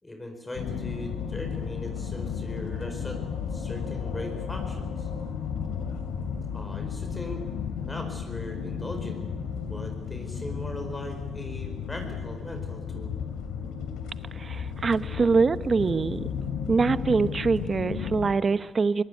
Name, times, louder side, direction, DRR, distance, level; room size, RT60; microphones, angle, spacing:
voice 1, 0.0-3.2 3.5-5.1 6.5-7.4 7.8-9.2 9.7-13.1, left 1 dB, 15° left, 5 dB, 4.8 m, -39 dB
sound 1, 0.5-18.3, left 7 dB, 85° left, 2.9 m, -33 dB
voice 2, 14.3-16.2 16.7-19.0, right 4 dB, 35° right, 14 dB, 0.9 m, -24 dB
21.5 x 19.5 x 9.3 m, 1.3 s
cardioid pair, 90°, 0 cm